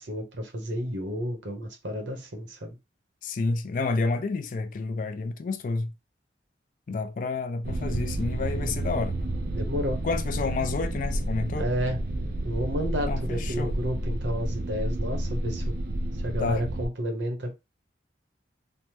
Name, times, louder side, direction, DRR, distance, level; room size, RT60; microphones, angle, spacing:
voice 1, 0.0-2.8 8.6-8.7 9.5-10.0 11.6-12.0 12.4-15.7 16.2-17.5, equal, 75° right, 0.9 m, -31 dB
voice 2, 3.2-5.9 6.9-9.1 10.0-11.7 13.1-13.7 16.4-16.6, left 3 dB, 45° left, 0.3 m, -29 dB
sound 1, 7.6-16.9, right 1 dB, 50° right, 0.4 m, -30 dB
3.3 x 2.0 x 2.9 m
head